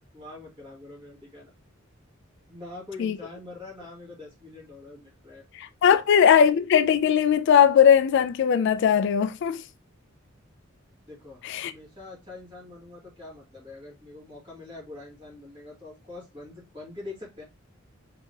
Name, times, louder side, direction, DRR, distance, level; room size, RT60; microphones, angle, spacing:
voice 1, 0.1-1.5 2.5-5.4 5.8-6.0 11.0-17.4, left 2 dB, 25° right, 2.3 m, -44 dB
voice 2, 5.5-9.6 11.4-11.7, left 8 dB, 60° left, 0.3 m, -19 dB
4.6 x 3.5 x 2.7 m
head